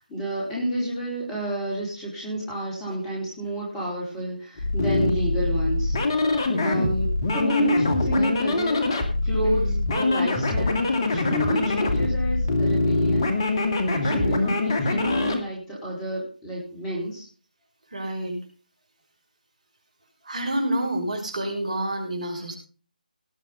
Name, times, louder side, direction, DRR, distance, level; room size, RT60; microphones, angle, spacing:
voice 1, 0.0-5.9 6.6-7.1 7.3-8.8 9.2-9.6 9.9-10.8 11.1-13.3 13.9-17.3, equal, 5° left, -5 dB, 4.5 m, -29 dB
sound 1, 4.6-15.4, left 2 dB, 30° left, 2.2 m, -24 dB
voice 2, 6.4-6.9 9.4-9.8 12.6-12.8 14.0-14.5 17.9-18.4 20.2-22.6, right 1 dB, 55° right, 2 dB, 5.6 m, -29 dB
18.5 x 7.2 x 5.5 m, 0.39 s
figure-of-eight pair, 155°, 5 cm